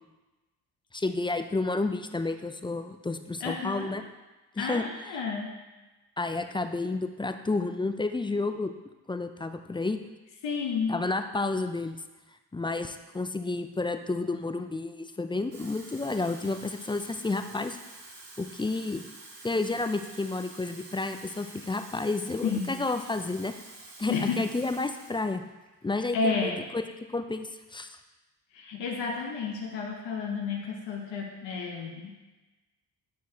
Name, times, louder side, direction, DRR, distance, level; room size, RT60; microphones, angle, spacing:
voice 1, 0.9-4.0 4.6-5.2 6.2-8.7 9.1-10.0 10.9-12.0 12.5-17.8 18.4-19.0 19.4-23.5 24.0-25.4 25.8-26.8 27.1-28.0, left 3 dB, 15° left, 7 dB, 0.3 m, -31 dB
voice 2, 3.4-3.9 4.6-5.5 10.4-10.9 22.4-22.8 24.1-24.4 26.1-26.6 28.5-32.2, left 5 dB, 80° left, 0 dB, 0.9 m, -31 dB
Water tap faucet / Fill (with liquid), 15.4-25.3 25.7-25.9, right 2 dB, 75° right, 1.4 m, -48 dB
8.1 x 4.7 x 2.8 m, 1.1 s
supercardioid pair, 55°, 43 cm